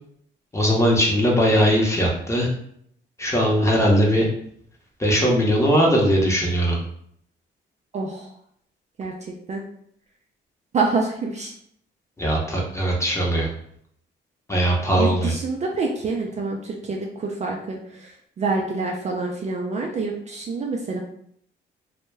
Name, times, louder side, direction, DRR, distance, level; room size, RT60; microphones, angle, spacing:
voice 1, 0.5-2.5 3.2-4.3 5.0-6.8 12.2-13.5 14.5-15.3, equal, 15° left, -2 dB, 0.7 m, -19 dB
voice 2, 7.9-8.3 9.0-9.1 9.5-9.6 10.7-11.5 14.9-21.0, right 3 dB, 35° right, 0 dB, 0.4 m, -27 dB
2.2 x 2.0 x 3.3 m, 0.68 s
cardioid pair, 90°, 20 cm